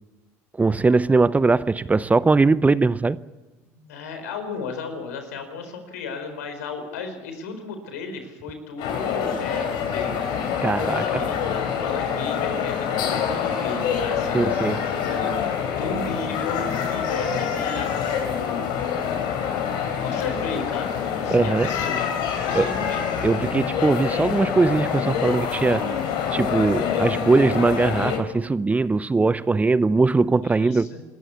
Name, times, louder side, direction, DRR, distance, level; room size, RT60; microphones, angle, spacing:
voice 1, 0.6-3.2 10.6-11.2 14.3-14.8 21.3-21.7 22.5-22.7 23.2-25.9 26.3-30.9, right 3 dB, 15° right, 0.7 m, -20 dB
voice 2, 3.6-11.4 11.8-17.9 19.2-19.5 19.9-22.1 22.3-23.1 30.4-31.0, left 4 dB, 85° left, 4.4 m, -35 dB
sound 1, 8.8-28.2, left 7 dB, 65° left, 4.3 m, -26 dB
27.0 x 14.0 x 8.4 m
hypercardioid pair, 75°, 8 cm